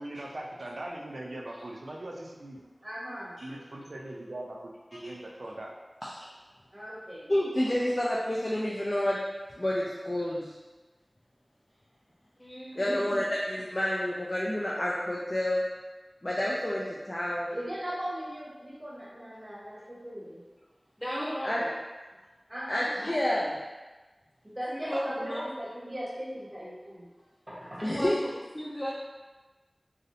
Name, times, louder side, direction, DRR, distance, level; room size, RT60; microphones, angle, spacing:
voice 1, 0.0-2.6 3.4-4.7 5.0-5.8, right 1 dB, 85° right, -1 dB, 0.3 m, -40 dB
voice 2, 2.8-3.7 6.7-7.3 12.7-13.2 17.5-20.4 22.5-22.9 24.4-27.1 27.5-27.9, equal, 30° right, -7 dB, 0.9 m, -38 dB
voice 3, 7.3-9.2 9.6-10.5 12.8-15.6 16.2-17.6 21.4-21.6 22.7-23.5 27.8-28.2, left 1 dB, 40° left, -6 dB, 0.3 m, -29 dB
voice 4, 12.4-13.1 21.0-21.7 22.9-23.3 24.7-25.5 27.9-28.9, equal, 20° left, -9 dB, 0.9 m, -35 dB
2.5 x 2.0 x 2.6 m, 1.2 s
wide cardioid pair, 50°, 0 cm